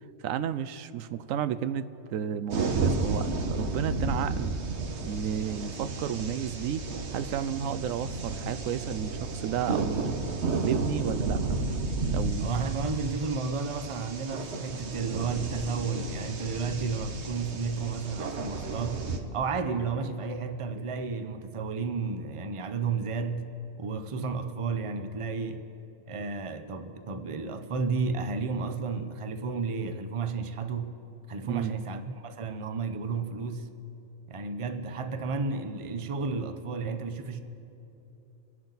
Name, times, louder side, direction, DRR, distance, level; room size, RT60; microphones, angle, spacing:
voice 1, 0.2-4.5 5.0-6.9 7.1-10.3 10.6-11.4 12.1-12.5 31.4-31.7, right 9 dB, 80° right, 1.0 m, -32 dB
sound 1, 2.5-19.2, right 3 dB, 60° right, 1.3 m, -32 dB
voice 2, 12.4-19.0 19.3-23.5 23.8-25.7 26.1-30.9 31.3-33.7 34.3-37.4, right 4 dB, 30° right, 0.6 m, -32 dB
26.0 x 11.0 x 4.0 m
omnidirectional pair, 1.4 m